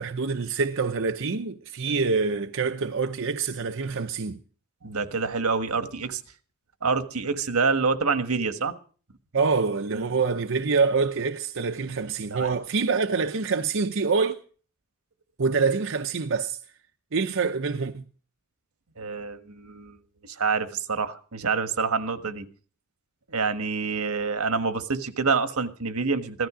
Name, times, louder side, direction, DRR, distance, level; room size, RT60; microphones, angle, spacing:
voice 1, 0.0-4.4 9.3-14.4 15.4-16.6 17.1-18.0, right 4 dB, 60° right, 0.8 m, -26 dB
voice 2, 4.8-6.2 6.8-8.7 9.9-10.1 12.3-12.5 19.0-20.0 20.3-22.5 23.3-26.5, right 4 dB, 90° right, 1.5 m, -27 dB
16.0 x 13.0 x 5.0 m
head